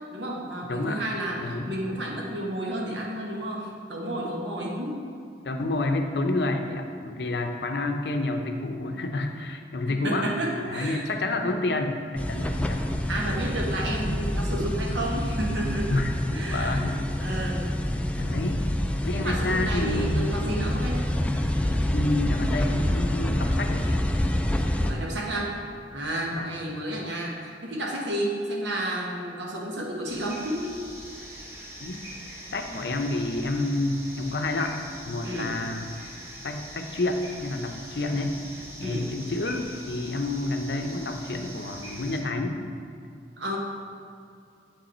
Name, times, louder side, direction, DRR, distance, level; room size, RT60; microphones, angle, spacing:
voice 1, 0.0-5.0 10.0-11.0 13.1-16.0 16.3-16.8 17.2-17.7 19.1-21.0 24.8-25.6 25.9-30.8 35.2-35.5 38.8-39.1 43.4-43.6, right 1 dB, 80° right, -2 dB, 1.3 m, -31 dB
voice 2, 0.7-1.0 1.4-1.8 5.4-10.3 10.7-12.8 15.9-16.1 16.5-17.6 18.1-18.6 19.0-20.3 21.9-24.0 26.3-26.5 31.8-32.0 32.5-35.9 36.4-38.4 38.8-42.6, left 2 dB, 65° left, 5 dB, 0.6 m, -29 dB
sound 1, 12.2-24.9, left 1 dB, 5° left, 0.3 m, -27 dB
sound 2, 30.1-42.2, equal, 15° right, 0.9 m, -43 dB
7.4 x 5.3 x 4.3 m, 2.5 s
head